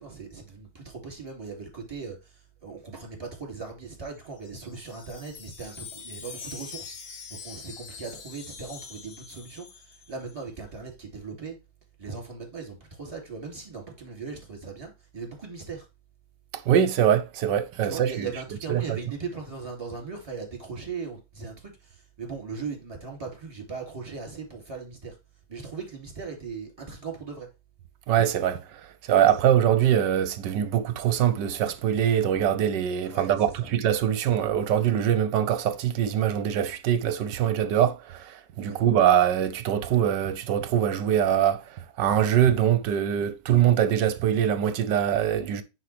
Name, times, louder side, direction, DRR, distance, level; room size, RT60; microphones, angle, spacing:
voice 1, 0.0-11.6 12.0-15.9 17.8-25.2 25.5-27.5 33.0-33.7 38.6-38.9, right 5 dB, 15° right, 2.7 m, -39 dB
Wind chime, 4.2-10.4, left 6 dB, 60° left, 1.5 m, -44 dB
voice 2, 16.5-18.3 18.7-19.0 28.1-45.6, right 10 dB, 70° right, 1.3 m, -23 dB
10.0 x 4.5 x 3.3 m
omnidirectional pair, 2.1 m